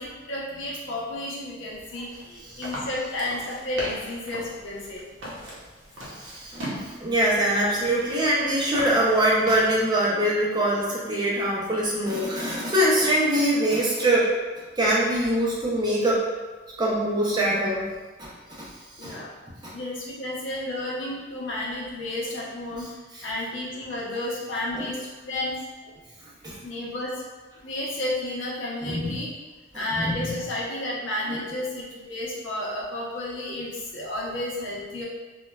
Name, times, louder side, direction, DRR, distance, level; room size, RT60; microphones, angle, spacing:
voice 1, 0.0-5.0 19.0-19.3 19.7-22.9 23.2-25.6 26.6-27.2 27.6-29.3 29.7-35.0, left 1 dB, 70° left, -4 dB, 0.6 m, -32 dB
sound 1, 1.7-9.8, equal, 85° right, 0.7 m, -39 dB
voice 2, 6.2-6.6 7.0-14.3 14.8-16.2 16.8-17.9 18.2-18.7 19.0-19.2 19.6-19.7 23.1-23.2 24.7-24.9 26.4-26.6 28.8-29.2 30.0-30.3 31.3-31.4, right 1 dB, 20° right, -5 dB, 0.5 m, -23 dB
3.0 x 2.2 x 2.2 m, 1.3 s
head